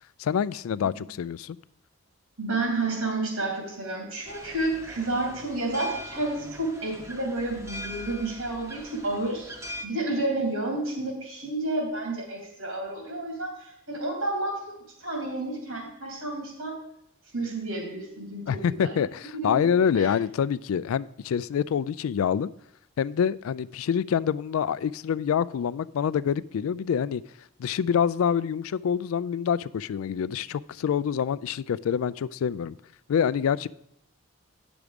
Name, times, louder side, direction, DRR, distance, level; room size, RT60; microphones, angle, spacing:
voice 1, 0.2-1.6 18.5-22.5 23.0-27.2 27.6-32.7 33.1-33.7, left 7 dB, 80° left, 19 dB, 0.3 m, -26 dB
voice 2, 2.4-9.5 9.8-16.8 17.3-19.0 19.3-20.1, right 2 dB, 80° right, 0 dB, 3.2 m, -30 dB
sound 1, 4.2-9.9, left 1 dB, 15° right, 0.7 m, -42 dB
9.5 x 6.1 x 5.1 m, 0.75 s
head